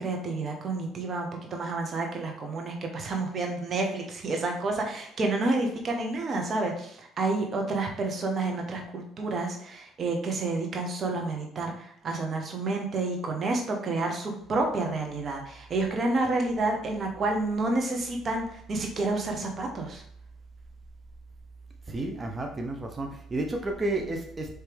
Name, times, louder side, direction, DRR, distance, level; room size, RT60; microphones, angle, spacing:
voice 1, 0.0-20.0, right 2 dB, 40° right, 2 dB, 1.1 m, -29 dB
voice 2, 21.9-24.5, right 2 dB, 25° right, 2 dB, 0.7 m, -31 dB
4.5 x 3.2 x 3.5 m, 0.68 s
cardioid pair, 95°, 0 cm